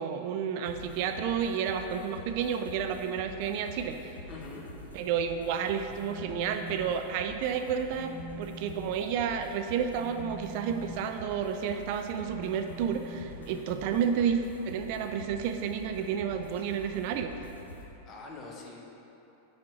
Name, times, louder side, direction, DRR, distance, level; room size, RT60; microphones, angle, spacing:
voice 1, 0.0-4.2 4.9-17.3, right 7 dB, 45° right, 6 dB, 0.5 m, -31 dB
sound 1, 0.6-17.8, left 1 dB, 80° left, 1.0 m, -47 dB
voice 2, 4.3-4.7 13.4-13.6 17.8-18.8, left 3 dB, 30° left, -1 dB, 1.1 m, -45 dB
Telephone, 5.9-6.9 7.2-7.5 7.9-14.0, left 1 dB, 50° left, 1.4 m, -46 dB
6.0 x 4.3 x 6.0 m, 3.0 s
figure-of-eight pair, 90°, 0 cm